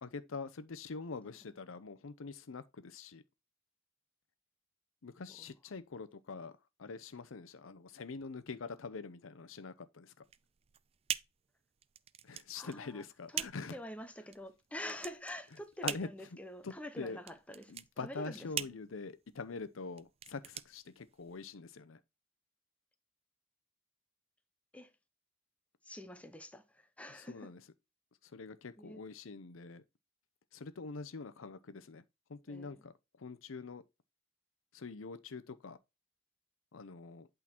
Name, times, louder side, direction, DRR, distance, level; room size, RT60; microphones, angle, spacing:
voice 1, 0.0-3.2 5.0-6.5 6.8-10.1 12.2-13.8 15.8-16.1 16.6-17.2 17.7-22.0 27.1-27.6 28.2-29.8 30.5-32.0 32.3-33.8 34.7-35.8 36.7-37.3, left 4 dB, 85° left, 0.7 m, -44 dB
voice 2, 1.2-1.5 5.4-5.5 12.5-13.0 13.3-17.7 18.0-18.8 24.7-24.9 25.8-27.5 28.8-29.0 32.5-32.8, left 1 dB, 5° left, 0.8 m, -47 dB
sound 1, 10.2-21.5, right 9 dB, 30° right, 0.4 m, -43 dB
8.5 x 3.9 x 4.3 m
head